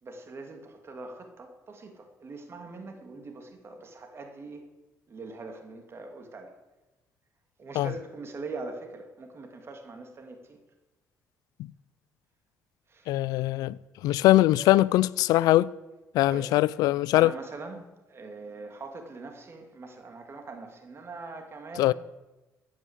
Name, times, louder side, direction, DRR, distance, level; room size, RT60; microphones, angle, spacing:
voice 1, 0.0-4.6 5.1-6.5 7.6-10.6 12.9-13.1 16.3-16.5 17.1-21.9, right 3 dB, 40° right, 2.7 m, -42 dB
voice 2, 13.1-13.8 14.0-15.7 16.1-17.3 21.8-21.9, left 16 dB, 85° left, 0.5 m, -21 dB
15.0 x 9.4 x 8.2 m
cardioid pair, 85°, 6 cm